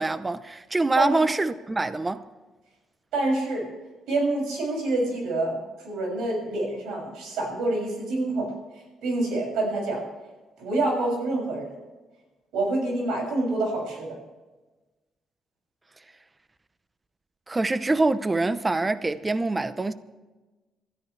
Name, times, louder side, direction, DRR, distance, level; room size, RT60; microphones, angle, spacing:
voice 1, 0.0-2.2 17.5-19.9, right 2 dB, 20° right, 0.8 m, -25 dB
voice 2, 3.1-3.7 4.1-5.6 5.8-8.5 9.0-10.0 10.6-11.7 12.5-14.1, right 2 dB, 90° right, 6.9 m, -26 dB
26.0 x 13.5 x 3.3 m
cardioid pair, 90°, 0 cm